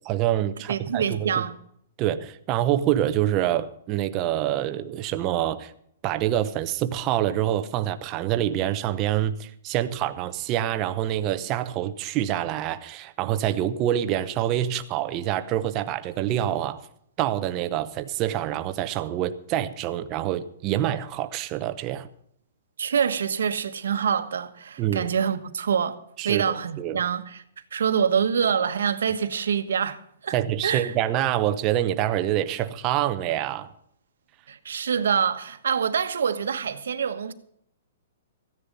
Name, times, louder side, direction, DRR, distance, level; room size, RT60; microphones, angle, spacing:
voice 1, 0.0-1.3 2.0-5.7 6.0-16.8 17.2-22.1 24.8-25.1 26.2-27.0 30.3-33.7, right 12 dB, 20° right, 0.8 m, -26 dB
voice 2, 0.7-1.6 22.8-26.0 26.2-27.4 27.7-30.4 30.6-30.9 34.5-37.3, right 7 dB, 85° right, 1.4 m, -25 dB
15.0 x 10.0 x 5.4 m
hypercardioid pair, 170°, 0 cm